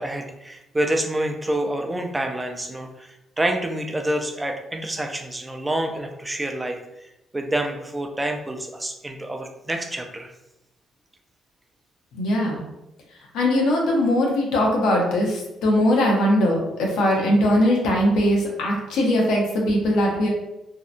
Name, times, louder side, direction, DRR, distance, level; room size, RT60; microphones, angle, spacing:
voice 1, 0.0-6.8 7.3-10.3, right 1 dB, 15° right, 4 dB, 0.4 m, -27 dB
voice 2, 12.1-12.6 13.3-20.3, left 1 dB, 85° left, -1 dB, 0.7 m, -20 dB
2.7 x 2.1 x 2.4 m, 0.90 s
cardioid pair, 90°, 0 cm